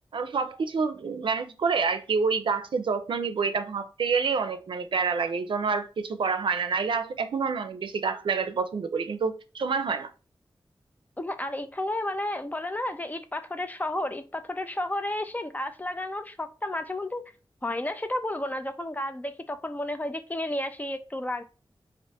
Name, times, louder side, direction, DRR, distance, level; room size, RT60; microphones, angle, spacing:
voice 1, 0.1-10.1, right 5 dB, 80° right, 0.4 m, -28 dB
voice 2, 11.2-17.2 17.6-21.4, left 1 dB, 20° left, 0.4 m, -32 dB
3.3 x 2.5 x 2.7 m
wide cardioid pair, 80°, 8 cm